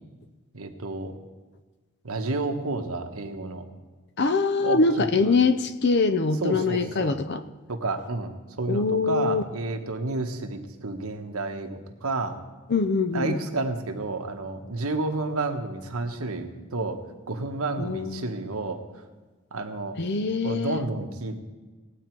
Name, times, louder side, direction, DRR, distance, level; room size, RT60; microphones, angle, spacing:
voice 1, 0.5-1.1 2.0-3.6 4.6-4.8 5.2-5.4 6.4-7.1 7.7-12.4 13.1-17.0 17.3-18.8 19.5-20.0 20.4-21.4, right 3 dB, 75° right, 5 dB, 1.2 m, -30 dB
voice 2, 4.2-7.4 8.7-9.4 12.7-13.4 17.8-18.3 20.0-20.8, left 4 dB, 50° left, 11 dB, 0.6 m, -23 dB
18.0 x 8.6 x 4.6 m, 1.3 s
head